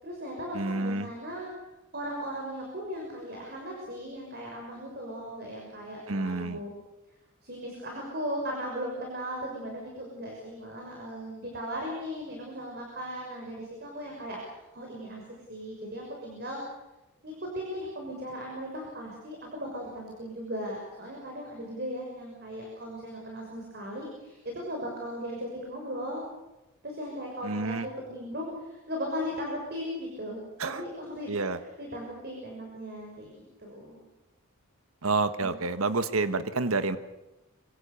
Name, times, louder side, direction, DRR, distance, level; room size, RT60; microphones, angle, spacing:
voice 1, 0.0-1.5 1.9-6.7 7.4-14.4 14.7-15.2 15.5-16.6 17.2-26.2 26.8-34.0 35.4-35.5, equal, 45° right, 0 dB, 6.3 m, -37 dB
voice 2, 0.5-1.1 6.1-6.6 27.4-27.9 30.6-30.8 31.3-31.6 35.0-37.0, right 3 dB, 75° right, 11 dB, 1.3 m, -29 dB
26.0 x 25.0 x 7.0 m, 1.0 s
head